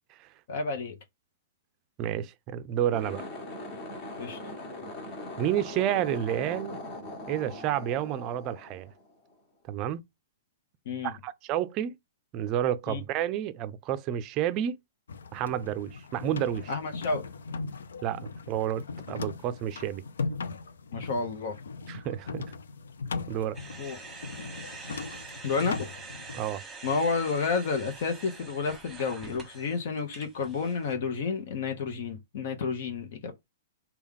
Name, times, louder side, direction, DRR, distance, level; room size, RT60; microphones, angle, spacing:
voice 1, 0.5-1.0 4.2-4.4 10.9-11.1 12.9-13.0 16.7-17.3 20.9-21.6 23.8-24.0 25.4-25.9 26.8-33.3, left 4 dB, 60° left, 0.9 m, -30 dB
voice 2, 2.0-3.2 5.4-6.8 7.3-8.9 9.7-10.0 11.0-12.0 12.3-14.8 15.3-16.7 18.0-20.0 21.9-22.4 23.3-23.6 26.3-26.6, right 11 dB, 35° right, 0.4 m, -30 dB
sound 1, 2.8-9.3, left 2 dB, 35° left, 1.3 m, -41 dB
sound 2, 15.1-26.4, left 4 dB, 85° left, 0.5 m, -39 dB
sound 3, 23.5-30.9, right 4 dB, 10° right, 1.1 m, -45 dB
3.4 x 2.3 x 3.6 m
hypercardioid pair, 140°, 0 cm